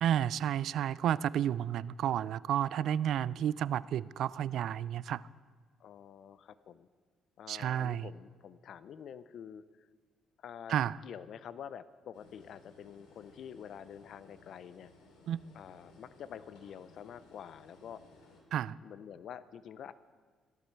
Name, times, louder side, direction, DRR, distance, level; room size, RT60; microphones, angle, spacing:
voice 1, 0.0-5.2 7.5-8.1 10.7-10.9 15.3-15.4 18.5-18.7, right 10 dB, 70° right, 20 dB, 0.3 m, -31 dB
voice 2, 5.8-6.9 7.4-9.9 10.4-10.8 11.0-14.9 15.5-18.0 18.8-19.9, left 8 dB, 65° left, 15 dB, 0.5 m, -47 dB
sound 1, 12.1-18.4, left 3 dB, 85° left, 3.3 m, -60 dB
15.5 x 12.5 x 4.6 m, 1.5 s
cardioid pair, 95°, 0 cm